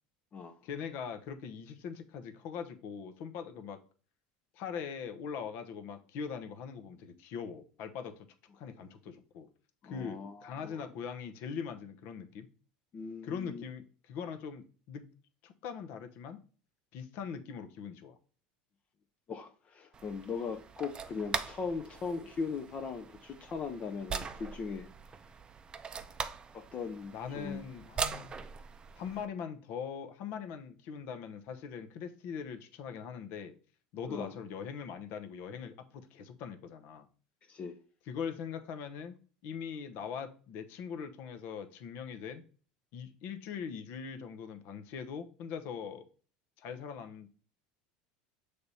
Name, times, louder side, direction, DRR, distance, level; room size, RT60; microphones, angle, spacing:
voice 1, 0.6-3.8 4.5-8.2 8.5-9.5 9.8-12.5 13.2-15.1 15.4-16.4 16.9-18.2 27.1-28.3 29.0-33.5 33.9-37.1 38.1-39.2 39.4-42.4 42.9-46.0 46.6-47.3, left 6 dB, 60° left, 0.9 m, -41 dB
voice 2, 9.8-10.9 12.9-13.6 19.3-24.9 26.5-27.6 34.1-34.4 37.5-37.8, left 5 dB, 35° left, 0.6 m, -39 dB
sound 1, 19.9-29.3, right 6 dB, 25° right, 0.5 m, -41 dB
6.6 x 3.4 x 4.1 m
supercardioid pair, 115°, 4 cm